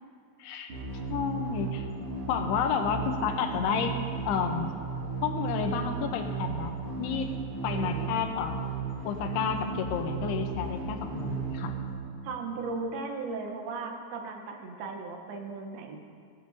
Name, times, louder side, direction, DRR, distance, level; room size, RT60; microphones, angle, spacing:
voice 1, 0.4-0.7 1.1-1.9 2.3-4.0 4.3-4.7 5.2-7.3 7.6-8.7 9.0-11.7, left 7 dB, 80° left, 5 dB, 2.7 m, -30 dB
sound 1, 0.7-12.6, right 5 dB, 45° right, 2.8 m, -35 dB
voice 2, 7.7-8.2 12.2-16.0, right 4 dB, 75° right, 3 dB, 2.7 m, -37 dB
16.5 x 12.0 x 2.6 m, 2.3 s
omnidirectional pair, 4.7 m